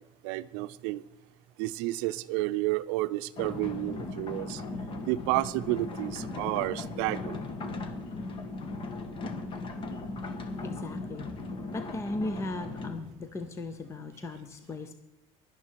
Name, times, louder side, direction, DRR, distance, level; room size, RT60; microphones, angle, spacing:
voice 1, 0.2-1.0 1.6-4.6 5.1-7.4, right 18 dB, 80° right, 14 dB, 0.6 m, -31 dB
sound 1, 3.4-13.0, left 3 dB, 35° left, 1.5 m, -37 dB
voice 2, 10.6-11.3 11.7-14.9, left 2 dB, 20° left, 9 dB, 0.8 m, -37 dB
17.0 x 11.5 x 4.7 m, 0.88 s
cardioid pair, 140°, 15 cm